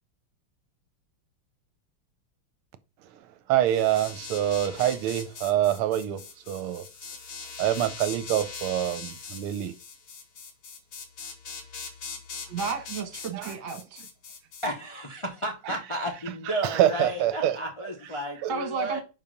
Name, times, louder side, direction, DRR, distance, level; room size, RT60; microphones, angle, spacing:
voice 1, 3.5-6.9 7.6-9.7 13.3-13.5 15.7-15.8 16.6-17.6 18.4-18.5, right 12 dB, 85° right, 1.5 m, -26 dB
sound 1, 3.7-14.7, left 5 dB, 60° left, 2.3 m, -41 dB
voice 2, 12.5-14.0 18.5-19.0, right 5 dB, 65° right, 1.9 m, -32 dB
voice 3, 14.6-19.0, equal, 40° left, 0.4 m, -33 dB
5.7 x 4.3 x 5.0 m
omnidirectional pair, 2.4 m